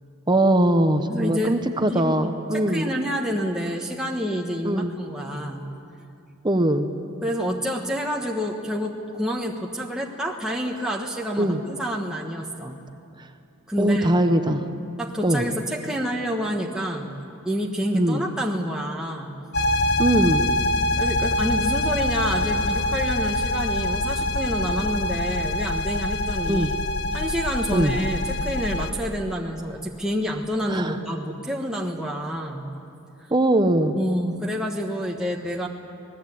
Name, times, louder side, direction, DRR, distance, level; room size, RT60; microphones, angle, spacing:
voice 1, 0.3-2.9 4.6-4.9 6.4-6.9 11.4-11.6 13.8-14.6 15.2-15.4 17.9-18.2 20.0-20.4 26.5-26.7 27.7-28.0 30.7-31.0 33.3-34.0, right 1 dB, 20° right, 7 dB, 1.0 m, -21 dB
voice 2, 1.1-1.5 1.9-5.7 7.2-12.8 13.7-14.2 15.0-17.2 17.4-19.4 21.0-26.8 27.1-32.7 33.2-33.3 34.0-35.7, equal, 5° right, -1 dB, 1.3 m, -28 dB
sound 1, 19.5-28.9, left 1 dB, 50° left, 1.2 m, -25 dB
26.5 x 19.5 x 8.5 m, 2.6 s
head